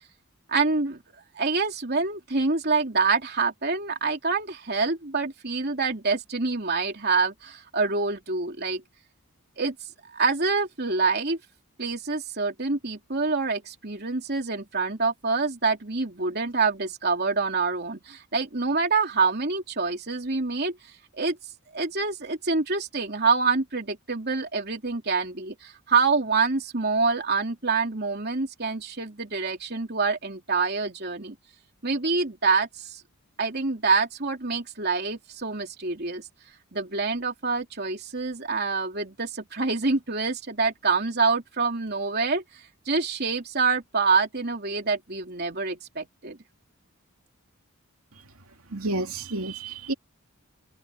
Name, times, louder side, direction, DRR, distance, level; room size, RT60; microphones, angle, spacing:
voice 1, 0.5-1.0 1.3-8.8 9.6-9.7 10.1-11.4 11.8-20.8 21.2-21.4 21.7-31.3 31.8-33.0 33.4-36.3 36.7-42.4 42.8-46.4, right 4 dB, 45° right, 3.4 m, -26 dB
voice 2, 48.7-49.9, right 2 dB, 75° right, 2.6 m, -30 dB
head